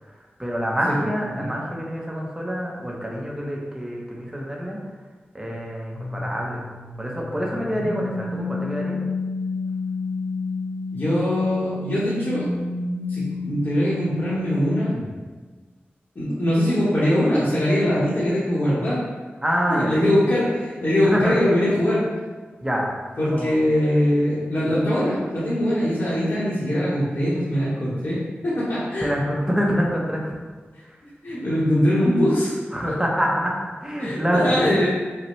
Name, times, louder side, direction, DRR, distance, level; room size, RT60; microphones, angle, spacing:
voice 1, 0.1-4.8 5.3-6.6 7.0-9.0 19.4-20.0 21.0-21.4 22.6-22.8 23.2-23.6 29.0-30.4 30.8-31.0 32.7-34.9, equal, 15° right, -2 dB, 0.8 m, -26 dB
sound 1, 5.9-15.2, left 3 dB, 85° left, 0.4 m, -30 dB
voice 2, 10.9-12.5 13.1-15.0 16.1-19.0 19.7-22.0 23.2-29.1 31.2-32.6 34.0-34.9, left 1 dB, 55° left, -10 dB, 1.1 m, -22 dB
5.4 x 2.2 x 3.1 m, 1.4 s
wide cardioid pair, 75°, 4 cm